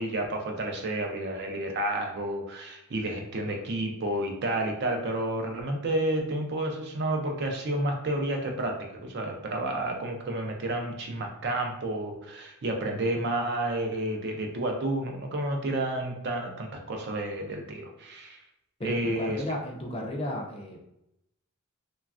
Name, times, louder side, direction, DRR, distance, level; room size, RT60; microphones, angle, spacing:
voice 1, 0.0-18.4 18.8-19.4, right 1 dB, 50° right, 3 dB, 0.4 m, -30 dB
voice 2, 18.8-20.8, left 1 dB, 25° left, 1 dB, 0.3 m, -33 dB
3.1 x 2.3 x 2.4 m, 0.83 s
head